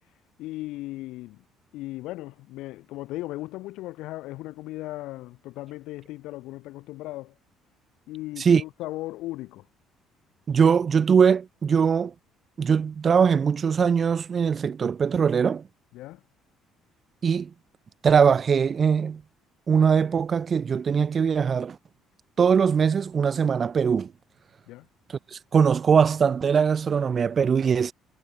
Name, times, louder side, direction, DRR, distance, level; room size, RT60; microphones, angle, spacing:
voice 1, 0.4-1.4 1.7-7.3 8.1-9.7 15.9-16.2 24.7-24.9, left 18 dB, 75° left, 4.8 m, -37 dB
voice 2, 10.5-12.1 12.6-15.6 17.2-17.5 18.0-19.2 19.7-21.8 22.4-24.1 25.3-27.9, right 6 dB, 25° right, 1.0 m, -21 dB
cardioid pair, 170°, 0 cm